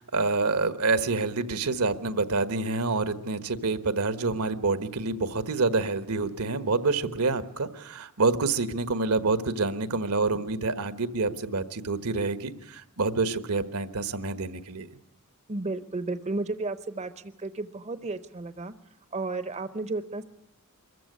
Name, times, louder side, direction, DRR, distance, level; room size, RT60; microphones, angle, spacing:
voice 1, 0.0-14.9, right 3 dB, 80° right, 12 dB, 1.3 m, -27 dB
voice 2, 15.5-18.7 19.1-20.2, right 3 dB, 30° right, 12 dB, 0.7 m, -33 dB
23.5 x 14.5 x 9.6 m, 0.82 s
head